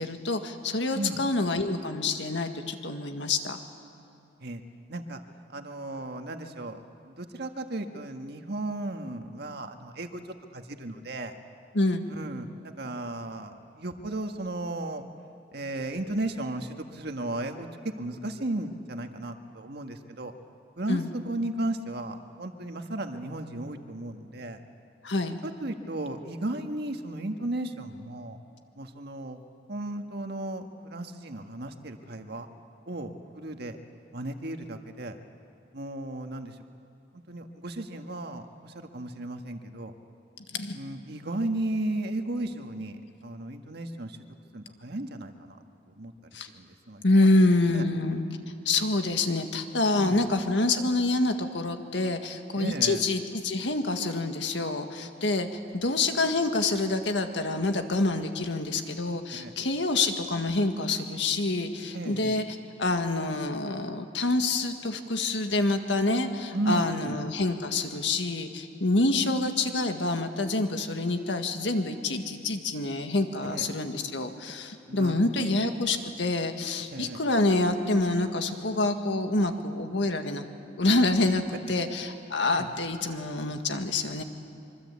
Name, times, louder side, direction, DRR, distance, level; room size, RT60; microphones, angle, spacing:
voice 1, 0.0-3.6 11.7-12.1 20.9-21.1 25.0-25.4 40.5-40.8 46.3-46.5 47.0-48.2 48.7-55.5 55.7-62.4 62.8-80.5 80.8-84.2, left 2 dB, 75° left, 6 dB, 1.8 m, -27 dB
voice 2, 4.9-5.2 5.5-10.2 10.5-11.4 12.1-15.0 15.5-20.3 20.8-24.6 25.4-28.4 28.8-29.4 29.7-32.5 32.9-33.8 34.1-35.2 35.7-36.6 37.1-39.9 40.7-44.2 44.5-45.6 46.0-46.1 46.5-47.3 47.7-47.8 49.9-50.2 52.6-53.0 59.4-59.5 61.9-62.4 66.5-67.2 73.4-73.7 74.9-75.6 76.9-77.2 81.7-81.8 82.5-82.7, right 1 dB, 60° right, 5 dB, 1.6 m, -35 dB
25.5 x 24.0 x 8.4 m, 2.6 s
head